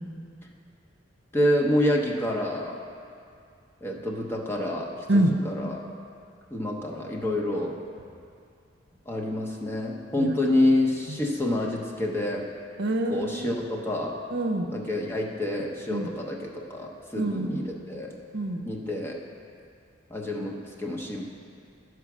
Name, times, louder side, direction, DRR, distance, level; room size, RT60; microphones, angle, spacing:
voice 1, 1.3-2.8 3.8-5.9 6.5-7.8 9.1-12.5 13.1-14.2 14.7-18.1 18.7-19.2 20.1-21.3, left 1 dB, 10° left, -1 dB, 0.9 m, -28 dB
voice 2, 12.8-13.6 14.3-14.7 15.9-16.1 17.2-17.6 18.3-18.6, right 1 dB, 65° right, 4 dB, 0.7 m, -26 dB
12.5 x 4.8 x 6.1 m, 2.4 s
head